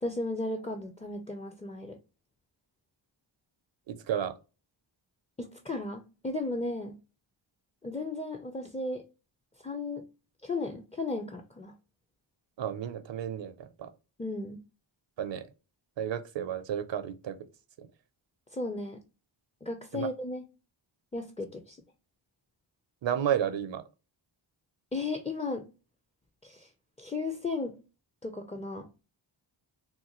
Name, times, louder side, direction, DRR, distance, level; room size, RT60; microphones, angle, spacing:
voice 1, 0.0-2.0 5.4-7.0 7.8-9.0 9.6-10.1 10.4-11.7 14.2-14.6 18.5-19.0 19.6-20.5 21.1-21.8 24.9-25.7 26.4-26.7 27.0-27.8 28.2-28.9, left 2 dB, 15° left, 0.4 m, -35 dB
voice 2, 3.9-4.4 12.6-13.9 15.2-15.5 16.0-17.4 17.8-17.9 19.9-20.1 23.0-23.8, right 9 dB, 65° right, 0.5 m, -32 dB
3.8 x 2.2 x 2.8 m
cardioid pair, 65°, 48 cm